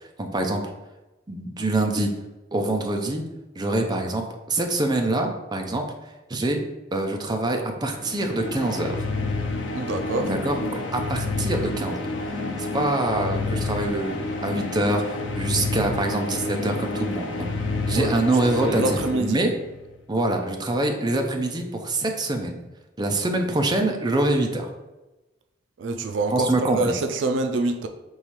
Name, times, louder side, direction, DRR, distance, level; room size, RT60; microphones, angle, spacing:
voice 1, 0.2-0.6 1.3-2.1 2.5-3.2 3.6-5.9 6.3-6.6 6.9-9.0 10.2-12.1 12.3-14.2 14.4-17.5 17.9-19.5 20.1-22.6 23.0-24.7 26.3-27.0, right 2 dB, 20° right, 0.6 m, -25 dB
sound 1, 8.0-19.8, left 3 dB, 90° left, 0.7 m, -29 dB
voice 2, 9.7-10.3 17.9-18.2 18.6-19.4 25.8-27.9, right 2 dB, 75° right, 0.4 m, -25 dB
5.4 x 3.2 x 3.1 m
head